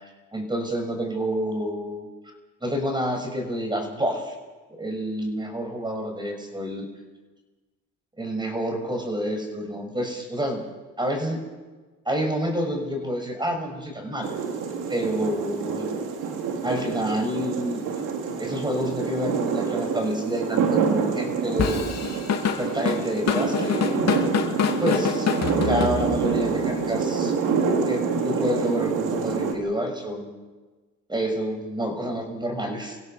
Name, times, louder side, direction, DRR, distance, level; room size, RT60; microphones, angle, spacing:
voice 1, 0.3-2.1 2.6-4.3 4.8-6.8 8.2-10.6 11.0-11.4 12.0-14.4 14.9-15.9 16.6-17.9 18.4-21.8 22.6-24.1 24.8-27.3 27.8-30.4 31.1-33.0, equal, 15° right, 4 dB, 6.3 m, -28 dB
sound 1, 14.2-29.5, right 5 dB, 90° right, 2.9 m, -27 dB
Drum kit / Drum, 21.6-26.4, left 7 dB, 60° left, 2.9 m, -25 dB
25.5 x 16.5 x 6.8 m, 1.3 s
cardioid pair, 90°, 30 cm